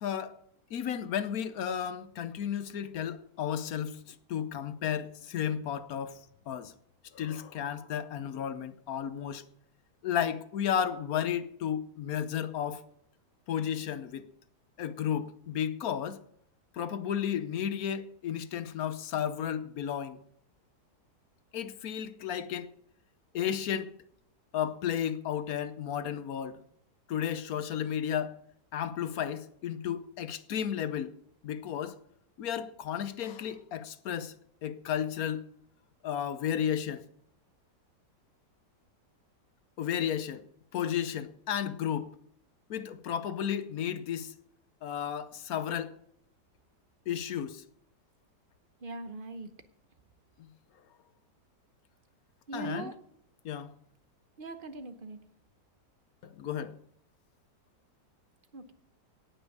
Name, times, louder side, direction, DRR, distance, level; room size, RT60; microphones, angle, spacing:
voice 1, 0.0-0.3 0.7-4.0 4.3-6.2 6.5-6.7 7.1-9.4 10.0-12.8 13.5-14.3 14.8-16.2 16.7-20.2 21.5-22.7 23.3-23.9 24.5-26.6 27.1-28.3 28.7-31.1 31.4-32.0 32.4-34.3 34.6-35.4 36.0-37.0 39.8-40.4 40.7-42.1 42.7-44.3 44.8-45.9 47.1-47.6 50.4-50.5 52.5-52.9 53.4-53.7 56.4-56.7, left 9 dB, 65° left, 1.1 m, -33 dB
voice 2, 48.8-49.5 52.5-52.9 54.4-55.2 58.5-58.7, right 3 dB, 40° right, 0.9 m, -40 dB
17.5 x 6.2 x 6.6 m
omnidirectional pair, 1.9 m